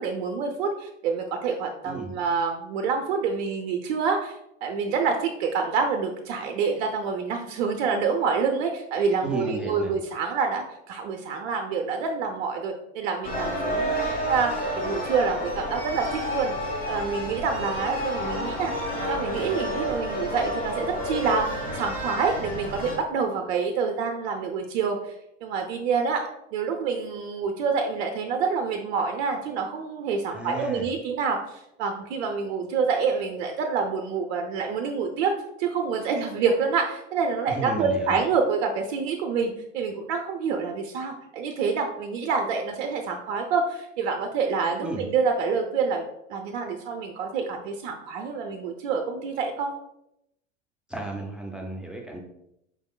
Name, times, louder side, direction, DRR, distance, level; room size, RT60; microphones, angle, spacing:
voice 1, 0.0-18.7 19.1-25.1 25.4-35.3 35.6-49.7, right 5 dB, 60° right, 4 dB, 0.6 m, -27 dB
voice 2, 1.8-2.2 9.2-9.9 30.3-30.9 37.5-38.2 44.8-45.0 50.9-52.2, right 2 dB, ahead, 1 dB, 0.6 m, -33 dB
sound 1, 13.2-23.0, equal, 20° left, 1.2 m, -30 dB
4.7 x 3.5 x 2.4 m, 0.82 s
figure-of-eight pair, 80°, 38 cm